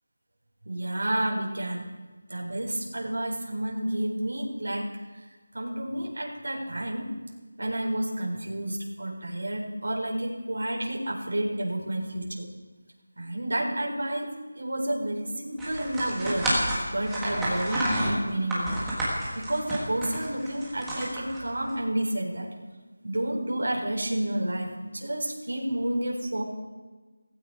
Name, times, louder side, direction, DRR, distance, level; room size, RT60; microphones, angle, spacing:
voice 1, 0.7-1.9 2.3-4.9 5.5-7.1 7.6-12.5 13.2-16.5 16.9-18.8 19.3-22.5 23.0-26.4, right 1 dB, 65° right, 0 dB, 4.3 m, -30 dB
sound 1, 15.6-21.7, right 1 dB, 5° right, 1.6 m, -30 dB
17.0 x 15.0 x 4.8 m, 1.3 s
figure-of-eight pair, 180°, 0 cm